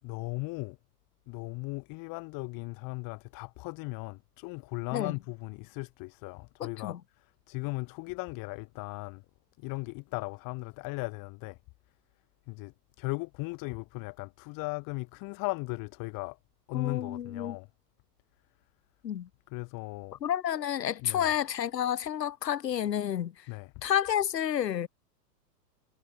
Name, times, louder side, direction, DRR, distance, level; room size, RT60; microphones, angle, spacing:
voice 1, 0.0-0.8 1.3-9.2 9.6-11.6 12.5-16.4 16.7-17.7 19.5-20.2 21.0-21.3 23.5-23.8, left 27 dB, 40° left, 7.9 m, -37 dB
voice 2, 6.6-7.0 16.7-17.5 19.0-19.3 20.2-23.4 23.8-24.9, left 10 dB, 80° left, 5.1 m, -30 dB
hypercardioid pair, 125°, 49 cm